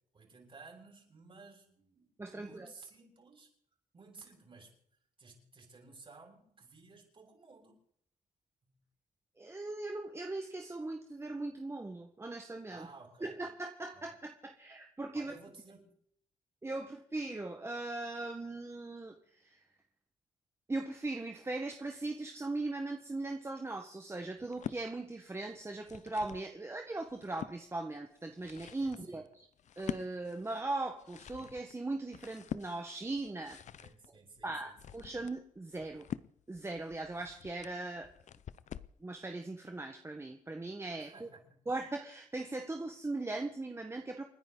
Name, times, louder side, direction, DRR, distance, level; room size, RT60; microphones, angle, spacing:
voice 1, 0.1-3.5 3.9-4.8 5.2-7.8 12.7-13.4 13.9-14.1 15.1-16.0 28.8-29.3 33.8-35.0 41.0-41.6, right 4 dB, 40° right, 1 dB, 6.8 m, -55 dB
voice 2, 2.2-2.7 9.4-12.9 13.2-15.3 16.6-19.6 20.7-29.5 29.8-33.6 34.4-36.1 36.5-38.1 39.0-41.3 41.7-44.2, right 2 dB, 20° right, 4 dB, 1.4 m, -39 dB
sound 1, 24.4-24.8 25.6-26.5 26.9-27.6 28.2-39.0, left 9 dB, 60° left, 0.6 m, -46 dB
29.5 x 10.0 x 4.0 m, 0.67 s
cardioid pair, 95°, 14 cm